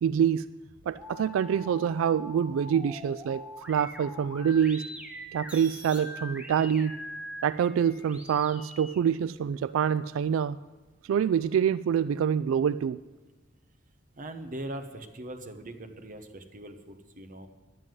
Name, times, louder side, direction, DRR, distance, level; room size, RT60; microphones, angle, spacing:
voice 1, 0.0-0.4 0.9-4.8 5.3-6.9 7.4-10.6 11.0-13.0, right 8 dB, 85° right, 15 dB, 0.3 m, -26 dB
sound 1, 0.6-9.0, left 1 dB, 5° right, 1.8 m, -44 dB
voice 2, 14.2-17.5, right 1 dB, 45° right, 6 dB, 1.1 m, -41 dB
11.0 x 9.3 x 7.8 m, 1.2 s
head